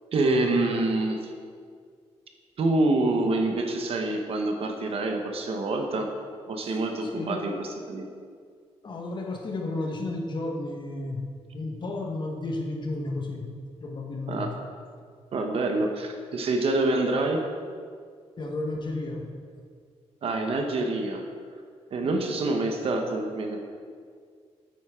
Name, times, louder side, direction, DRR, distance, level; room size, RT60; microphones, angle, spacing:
voice 1, 0.1-1.2 2.6-6.1 6.5-8.1 14.3-14.5 15.3-17.4 20.2-21.2 21.9-23.6, right 2 dB, 60° right, 3 dB, 1.1 m, -26 dB
voice 2, 7.1-7.5 8.8-13.5 13.8-14.5 18.4-19.3, left 2 dB, 45° left, 1 dB, 1.4 m, -32 dB
8.9 x 8.2 x 3.7 m, 2.1 s
cardioid pair, 100°, 11 cm